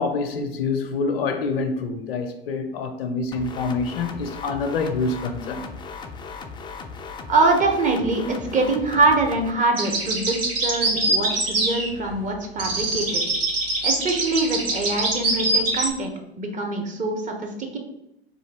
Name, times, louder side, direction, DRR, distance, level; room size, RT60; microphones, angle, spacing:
voice 1, 0.0-5.6 17.6-17.7, left 4 dB, 75° left, 0.6 m, -26 dB
sound 1, 3.3-9.5, left 4 dB, 15° left, 0.3 m, -37 dB
voice 2, 7.3-13.2 13.8-16.1 16.4-17.8, right 3 dB, 25° right, 0.9 m, -23 dB
sound 2, 9.8-12.3 12.6-15.9, right 2 dB, 70° right, 1.1 m, -24 dB
3.6 x 2.8 x 4.2 m
hypercardioid pair, 80°, 30 cm